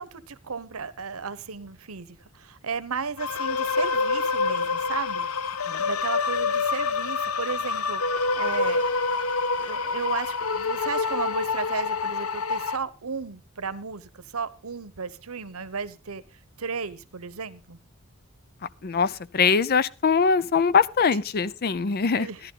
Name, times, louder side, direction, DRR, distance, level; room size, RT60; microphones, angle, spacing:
voice 1, 0.0-5.3 5.8-8.0 8.3-8.8 9.6-16.2 16.6-17.8 22.2-22.4, right 5 dB, 85° right, 1.0 m, -34 dB
sound 1, 3.2-12.8, left 4 dB, 85° left, 0.8 m, -27 dB
voice 2, 18.8-22.3, left 5 dB, 45° left, 0.5 m, -22 dB
14.0 x 11.0 x 3.8 m
head